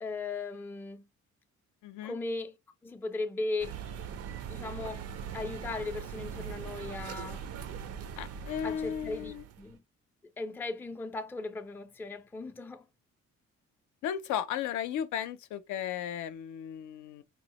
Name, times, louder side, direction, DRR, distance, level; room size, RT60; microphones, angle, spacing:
voice 1, 0.0-1.1 2.0-2.6 2.8-3.8 4.5-5.1 5.3-7.5 8.6-9.8 10.4-12.9, left 3 dB, 5° left, 0.3 m, -37 dB
voice 2, 1.8-2.2 8.2-9.4 14.0-17.2, left 9 dB, 75° left, 0.5 m, -35 dB
sound 1, 3.6-9.7, right 7 dB, 55° right, 0.5 m, -41 dB
3.7 x 2.0 x 2.9 m
cardioid pair, 90°, 30 cm